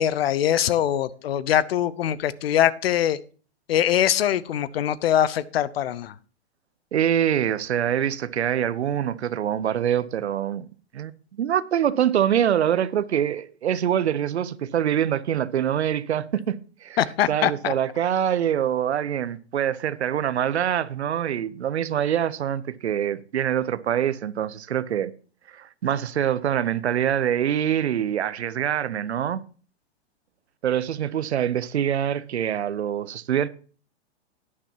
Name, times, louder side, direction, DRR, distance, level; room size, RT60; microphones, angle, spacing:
voice 1, 0.0-3.2 3.7-6.1 17.0-17.7, left 11 dB, 65° left, 0.7 m, -22 dB
voice 2, 6.9-10.7 10.9-11.1 11.4-17.0 17.3-25.1 25.5-29.4 30.6-33.5, right 10 dB, 80° right, 0.8 m, -24 dB
11.5 x 9.8 x 2.9 m
hypercardioid pair, 125°, 33 cm